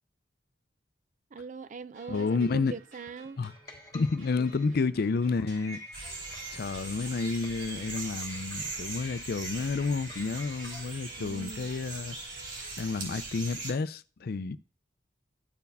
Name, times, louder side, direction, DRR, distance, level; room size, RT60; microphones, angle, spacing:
voice 1, 1.3-3.4 4.4-4.5 11.2-11.7, right 4 dB, 45° right, 0.4 m, -41 dB
sound 1, 1.9-13.0, right 2 dB, 75° right, 4.7 m, -56 dB
voice 2, 2.1-2.7 3.4-3.5 3.9-5.8 6.5-12.2 12.8-14.6, left 4 dB, 60° left, 0.5 m, -30 dB
sound 2, 2.5-10.9, left 1 dB, 20° left, 1.5 m, -48 dB
sound 3, 5.9-13.7, right 3 dB, 60° right, 4.1 m, -40 dB
13.5 x 4.7 x 3.4 m
head